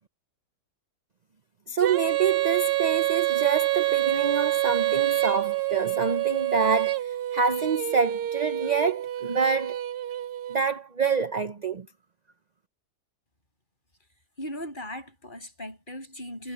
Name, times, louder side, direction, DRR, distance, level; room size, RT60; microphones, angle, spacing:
voice 1, 1.7-6.9 7.3-9.8 10.5-11.9, right 5 dB, 35° right, 0.7 m, -26 dB
Female singing, 1.8-10.6, right 15 dB, 85° right, 1.4 m, -27 dB
voice 2, 14.4-16.5, equal, 30° left, 7.6 m, -38 dB
omnidirectional pair, 1.6 m